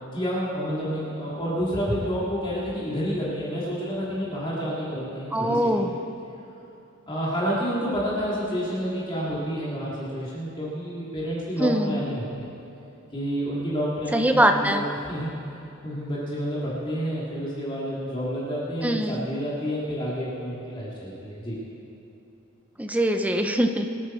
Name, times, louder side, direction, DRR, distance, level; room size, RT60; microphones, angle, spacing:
voice 1, 0.1-5.9 7.1-12.5 13.1-14.8 15.1-15.3 15.8-21.6, equal, 25° left, -8 dB, 2.6 m, -29 dB
voice 2, 5.3-5.9 11.6-12.0 14.1-14.8 18.8-19.3 22.8-23.9, right 1 dB, 5° right, 5 dB, 0.7 m, -22 dB
24.5 x 9.2 x 4.5 m, 2.9 s
head